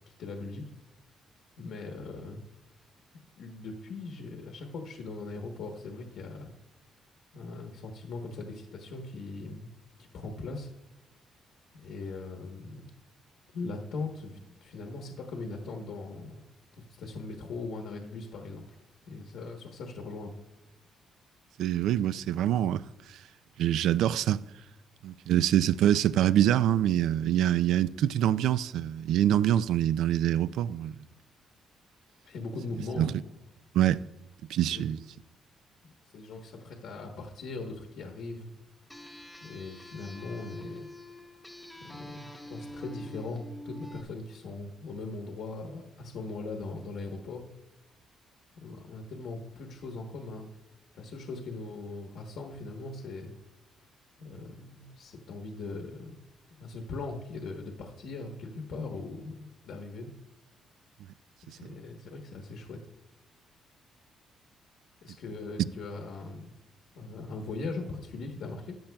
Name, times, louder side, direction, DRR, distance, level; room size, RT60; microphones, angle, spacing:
voice 1, 0.2-0.6 1.6-2.4 3.4-6.5 7.3-9.7 10.1-10.7 11.7-12.9 13.5-16.4 16.8-18.7 19.1-20.3 32.2-33.1 34.7-34.9 36.1-38.5 39.4-40.9 41.8-47.4 48.6-50.5 50.9-53.3 54.2-60.1 61.4-62.8 65.0-66.6 66.9-68.8, left 3 dB, 70° left, 1.1 m, -40 dB
voice 2, 21.6-22.8 23.6-24.4 25.0-30.9 33.0-33.1 33.7-34.0 34.5-35.0, right 11 dB, 85° right, 0.3 m, -25 dB
sound 1, 38.9-44.0, left 1 dB, 5° left, 0.8 m, -45 dB
14.5 x 10.5 x 2.3 m
cardioid pair, 170°, 0 cm